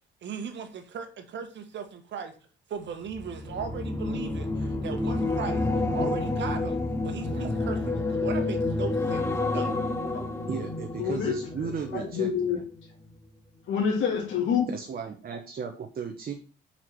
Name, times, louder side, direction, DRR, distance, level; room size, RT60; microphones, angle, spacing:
voice 1, 0.2-2.3 2.7-5.6 5.9-6.8 7.0-9.7, right 6 dB, 65° right, 1.6 m, -37 dB
sound 1, 3.1-12.4 12.8-13.1, left 2 dB, 15° left, 2.2 m, -29 dB
voice 2, 10.5-12.6 14.7-16.3, right 6 dB, 50° right, 1.2 m, -35 dB
voice 3, 11.0-11.3 11.6-12.6 13.7-14.7, left 7 dB, 75° left, 2.3 m, -27 dB
5.9 x 4.8 x 6.1 m
cardioid pair, 90°, 20 cm